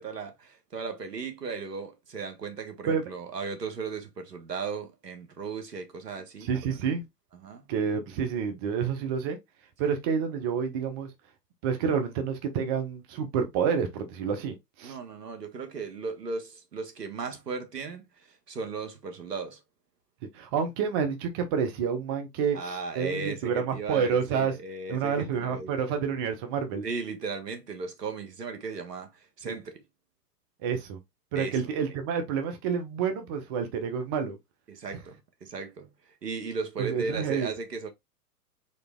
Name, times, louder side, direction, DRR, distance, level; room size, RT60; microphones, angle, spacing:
voice 1, 0.0-6.8 7.3-7.7 9.8-9.9 14.8-19.6 22.5-25.8 26.8-29.8 31.3-31.6 34.7-35.2 35.4-35.9 36.2-37.9, right 4 dB, 80° right, 1.4 m, -36 dB
voice 2, 6.4-7.0 7.7-9.4 9.8-11.1 11.6-14.9 20.3-24.6 24.9-26.9 29.4-29.6 30.6-31.0 31.3-34.4 36.8-37.5, right 6 dB, 15° right, 0.4 m, -29 dB
4.1 x 3.2 x 3.4 m
figure-of-eight pair, 110°, 48 cm